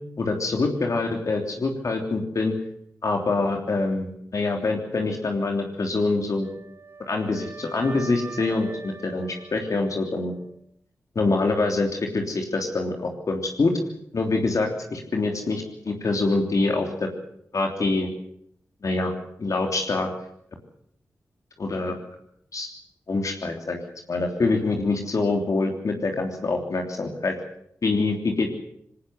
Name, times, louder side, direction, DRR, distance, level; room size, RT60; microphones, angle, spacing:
voice 1, 0.2-2.5 3.0-6.5 7.1-10.3 11.1-11.9 12.1-13.7 14.1-17.1 17.5-18.1 18.8-19.1 19.4-20.1 21.6-22.0 22.5-22.7 23.1-23.8 24.1-27.4 27.8-28.5, left 3 dB, 60° left, 2 dB, 3.3 m, -25 dB
Wind instrument woodwind instrument, 6.4-10.5, right 3 dB, 45° right, 6.0 m, -43 dB
20.5 x 18.0 x 8.0 m, 0.71 s
cardioid pair, 40°, 6 cm